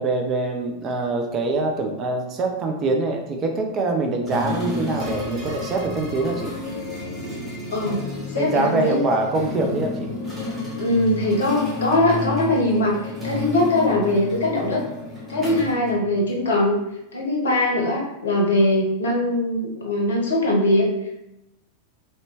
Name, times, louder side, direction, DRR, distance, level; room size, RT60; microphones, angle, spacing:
voice 1, 0.0-6.5 8.4-10.1, right 3 dB, 30° right, 3 dB, 0.5 m, -24 dB
sound 1, 4.3-16.5, left 2 dB, 15° right, 0.8 m, -31 dB
voice 2, 8.3-9.0 10.8-14.8 15.3-16.8 17.1-20.9, left 1 dB, 65° left, -2 dB, 0.7 m, -21 dB
2.7 x 2.2 x 2.8 m, 0.86 s
figure-of-eight pair, 90°, 0 cm